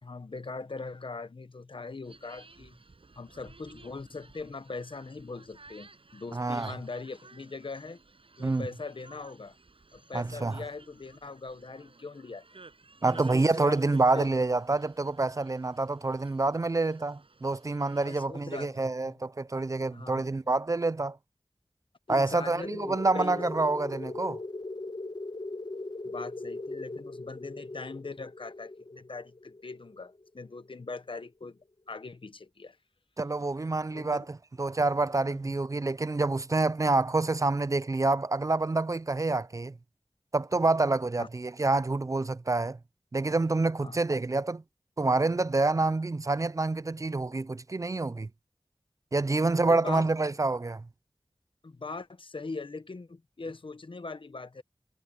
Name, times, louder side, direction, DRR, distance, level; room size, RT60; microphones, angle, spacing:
voice 1, 0.0-2.8 3.1-8.0 8.4-9.6 9.9-12.4 13.0-14.3 18.0-19.1 19.9-20.2 22.1-23.6 26.0-31.6 31.9-32.8 33.9-34.2 35.4-35.5 41.2-41.3 43.8-44.0 49.7-50.1 51.6-54.6, left 3 dB, 70° left, 1.0 m, -41 dB
sound 1, 2.0-18.3, right 3 dB, 80° right, 7.2 m, -56 dB
voice 2, 6.3-6.8 8.4-8.7 10.1-10.6 13.0-21.2 22.1-24.4 33.2-34.2 34.6-39.7 40.3-42.8 43.1-44.6 45.0-48.3 49.1-50.8, right 3 dB, 35° right, 0.4 m, -27 dB
sound 2, 22.6-31.0, left 2 dB, 50° left, 1.3 m, -40 dB
wide cardioid pair, 60°, 9 cm